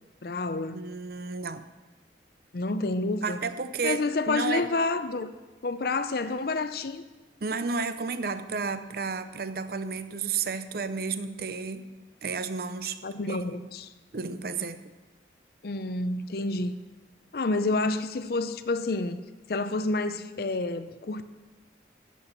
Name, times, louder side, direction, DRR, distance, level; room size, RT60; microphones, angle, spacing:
voice 1, 0.2-0.8 2.5-3.4 3.8-5.3 5.6-7.0 13.0-13.9 15.6-16.8 17.3-19.2 19.5-21.2, left 3 dB, 55° left, 0.5 m, -29 dB
voice 2, 0.7-1.6 3.2-4.7 7.4-11.9 12.2-13.0 13.3-13.4 14.1-14.8, right 5 dB, 55° right, 0.6 m, -32 dB
13.5 x 7.7 x 5.8 m
head